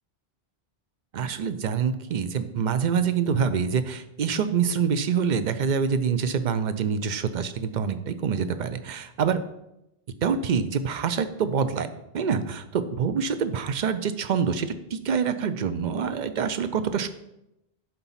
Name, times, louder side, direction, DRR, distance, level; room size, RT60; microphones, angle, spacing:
voice 1, 1.1-9.4 10.2-11.9 12.1-17.1, right 6 dB, 50° right, 11 dB, 0.7 m, -26 dB
11.5 x 4.1 x 5.6 m, 0.87 s
omnidirectional pair, 1.0 m